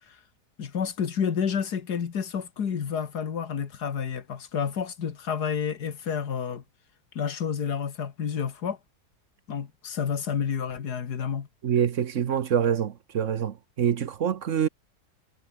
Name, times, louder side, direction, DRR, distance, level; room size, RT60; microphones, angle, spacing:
voice 1, 0.6-6.6 7.1-8.8 9.5-11.5, left 7 dB, 90° left, 2.2 m, -30 dB
voice 2, 11.6-14.7, right 8 dB, 55° right, 1.1 m, -25 dB
omnidirectional pair, 1.7 m